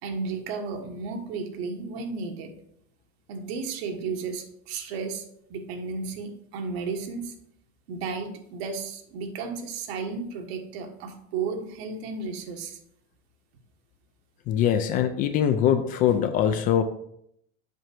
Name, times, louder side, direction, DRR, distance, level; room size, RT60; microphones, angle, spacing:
voice 1, 0.0-2.5 3.3-5.2 5.5-7.3 7.9-12.8, right 4 dB, 70° right, 4 dB, 1.5 m, -33 dB
voice 2, 14.5-16.8, left 9 dB, 25° left, 9 dB, 0.3 m, -22 dB
7.8 x 5.5 x 4.6 m, 0.72 s
supercardioid pair, 160°, 32 cm